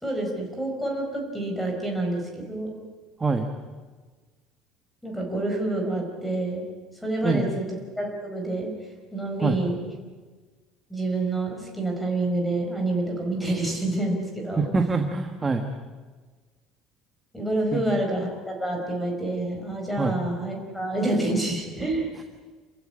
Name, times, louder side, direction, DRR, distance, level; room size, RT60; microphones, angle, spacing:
voice 1, 0.0-2.7 5.0-6.7 7.0-7.6 8.0-8.7 9.1-9.8 10.9-14.7 17.3-22.1, right 2 dB, 5° left, 2 dB, 5.0 m, -28 dB
voice 2, 14.6-15.6 17.7-17.8 20.0-20.2, right 4 dB, 15° right, 4 dB, 1.4 m, -24 dB
28.0 x 15.5 x 10.0 m, 1.4 s
cardioid pair, 175°, 0 cm